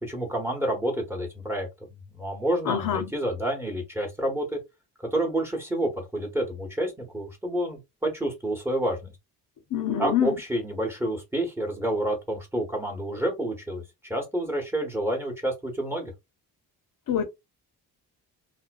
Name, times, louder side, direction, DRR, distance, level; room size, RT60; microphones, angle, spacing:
voice 1, 0.0-4.6 5.1-9.1 10.0-13.8 14.1-16.1, right 1 dB, 5° right, 1.1 m, -29 dB
voice 2, 2.6-3.1 9.7-10.3 17.1-17.2, left 9 dB, 55° left, 0.7 m, -25 dB
2.4 x 2.2 x 2.3 m
cardioid pair, 90°, 39 cm